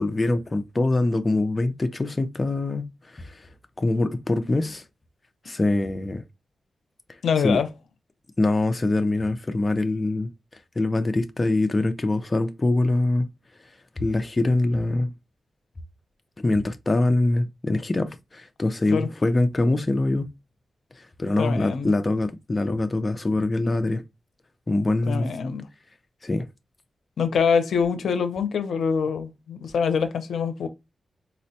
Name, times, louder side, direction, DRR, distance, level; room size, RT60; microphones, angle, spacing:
voice 1, 0.0-3.5 3.8-4.8 5.5-6.2 7.4-7.6 8.4-10.3 10.8-13.3 14.0-15.1 16.4-20.3 21.0-24.0 24.7-25.3 26.2-26.5, left 2 dB, 30° left, 0.5 m, -24 dB
voice 2, 7.2-7.7 18.9-19.1 21.4-21.9 25.1-25.7 27.2-30.7, left 6 dB, 90° left, 0.5 m, -24 dB
4.1 x 2.1 x 2.7 m
wide cardioid pair, 95°, 0 cm